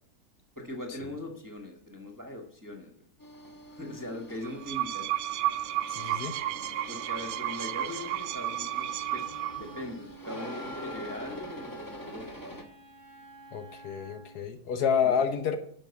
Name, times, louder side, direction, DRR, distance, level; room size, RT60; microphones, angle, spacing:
voice 1, 0.5-3.0 3.7-5.1 6.9-9.3 9.6-12.5 15.0-15.4, left 1 dB, 15° right, 1.2 m, -41 dB
sound 1, 3.2-12.6, equal, 15° left, 1.0 m, -45 dB
sound 2, 4.4-9.8, right 13 dB, 85° right, 1.2 m, -32 dB
voice 2, 5.9-6.3 13.5-15.6, left 7 dB, 70° left, 1.4 m, -29 dB
Wind instrument woodwind instrument, 9.6-14.4, right 1 dB, 50° left, 3.7 m, -48 dB
10.5 x 5.7 x 7.0 m
omnidirectional pair, 1.8 m